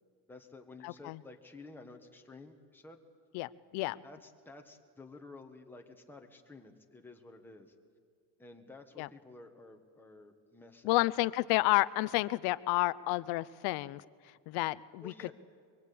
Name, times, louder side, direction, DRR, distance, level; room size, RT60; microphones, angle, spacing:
voice 1, 0.3-3.0 4.0-7.7 8.4-11.1 15.0-15.3, left 3 dB, 5° left, 2 dB, 1.5 m, -52 dB
voice 2, 0.8-1.2 3.3-4.0 9.0-9.1 10.8-14.0 14.5-15.1, left 20 dB, 60° left, 18 dB, 0.7 m, -30 dB
24.0 x 23.5 x 8.6 m, 2.1 s
cardioid pair, 175°, 43 cm